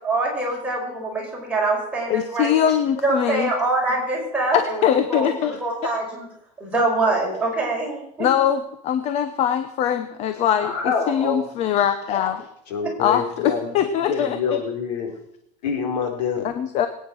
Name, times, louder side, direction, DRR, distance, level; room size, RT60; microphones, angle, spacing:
voice 1, 0.0-2.6 3.0-6.3 6.6-8.3, right 2 dB, 5° right, -3 dB, 5.3 m, -24 dB
voice 2, 2.1-3.5 4.5-5.6 5.8-5.9 8.2-12.5 13.0-14.6 16.4-16.9, left 9 dB, 30° left, 9 dB, 0.9 m, -22 dB
voice 3, 10.6-11.6 12.7-13.7 14.1-15.1 15.6-16.4, left 5 dB, 80° left, 2 dB, 4.6 m, -26 dB
21.5 x 9.5 x 6.3 m, 0.75 s
supercardioid pair, 165°, 21 cm